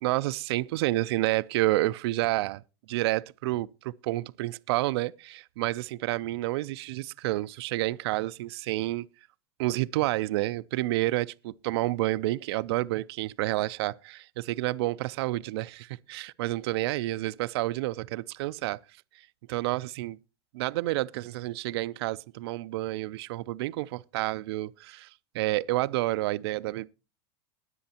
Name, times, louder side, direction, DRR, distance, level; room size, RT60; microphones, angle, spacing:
voice 1, 0.0-2.6 2.9-9.1 9.6-18.8 19.1-20.2 20.5-26.9, right 18 dB, 70° right, 0.4 m, -29 dB
20.5 x 7.7 x 2.8 m
supercardioid pair, 145°, 14 cm